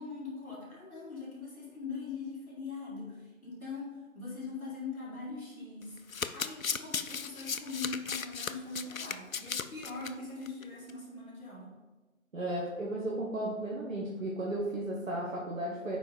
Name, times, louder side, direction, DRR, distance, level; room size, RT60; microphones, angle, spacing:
voice 1, 0.0-6.0 6.3-11.7, left 4 dB, 10° left, -17 dB, 2.5 m, -41 dB
Domestic sounds home sounds, 5.8-10.1 10.5-10.6 10.9-11.0, left 6 dB, 75° left, 0.6 m, -36 dB
voice 2, 12.3-16.0, right 1 dB, 70° right, -4 dB, 1.5 m, -34 dB
6.6 x 5.0 x 5.2 m, 1.2 s
figure-of-eight pair, 170°, 41 cm